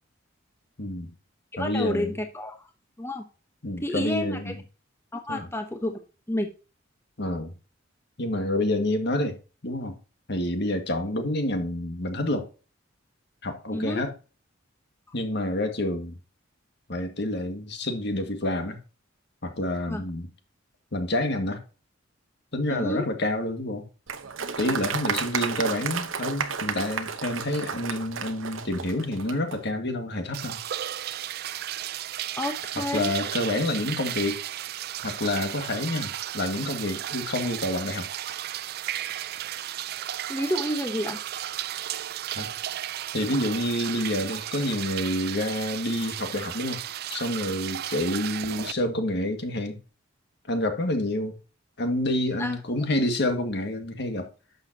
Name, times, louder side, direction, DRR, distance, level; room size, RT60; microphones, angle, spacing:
voice 1, 0.8-1.2 1.6-2.2 3.6-4.6 5.3-5.5 7.2-7.6 8.2-9.4 9.6-9.9 10.3-12.5 13.4-14.1 15.1-16.2 16.9-18.8 19.4-20.3 20.9-21.6 22.5-23.9 24.6-30.6 32.8-34.4 35.0-38.1 42.4-42.5 43.1-46.8 47.1-49.8 50.5-51.4 51.8-54.3, left 1 dB, 60° left, 1.8 m, -28 dB
voice 2, 1.5-2.7 3.0-3.3 3.8-4.5 5.1-6.0 6.3-6.5 13.7-14.0 19.9-20.0 22.7-23.0 32.4-33.1 40.3-41.2 52.4-52.6, left 1 dB, 10° left, 0.9 m, -30 dB
Applause, 24.1-29.6, right 6 dB, 80° right, 0.9 m, -32 dB
sound 1, 30.3-48.7, right 12 dB, 50° right, 0.4 m, -34 dB
11.0 x 6.8 x 2.8 m
head